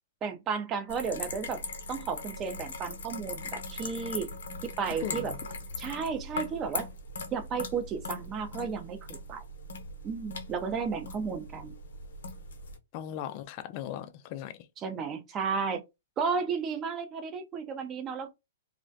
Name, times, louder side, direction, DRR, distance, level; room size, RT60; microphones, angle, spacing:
voice 1, 0.2-1.6 1.9-4.3 4.8-5.3 5.8-6.9 7.3-9.0 9.3-9.4 10.0-11.7 14.8-15.8 16.2-18.3, right 5 dB, 25° right, 0.5 m, -33 dB
sound 1, 0.9-12.8, left 3 dB, 80° left, 0.7 m, -40 dB
voice 2, 5.0-5.4 12.9-14.7, left 11 dB, 40° left, 0.3 m, -38 dB
2.4 x 2.1 x 2.5 m
hypercardioid pair, 140°, 0 cm